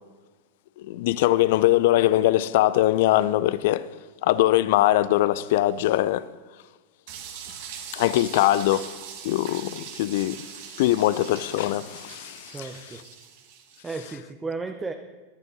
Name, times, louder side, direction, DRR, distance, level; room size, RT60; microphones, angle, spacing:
voice 1, 0.8-3.9 4.2-6.3 7.9-8.9 9.2-10.4 10.8-12.7, left 15 dB, 50° left, 0.5 m, -22 dB
sound 1, 7.1-13.9, right 8 dB, 50° right, 2.0 m, -42 dB
voice 2, 12.5-13.0 13.8-14.9, right 4 dB, 15° right, 0.9 m, -34 dB
22.0 x 11.5 x 3.9 m
figure-of-eight pair, 90°, 0 cm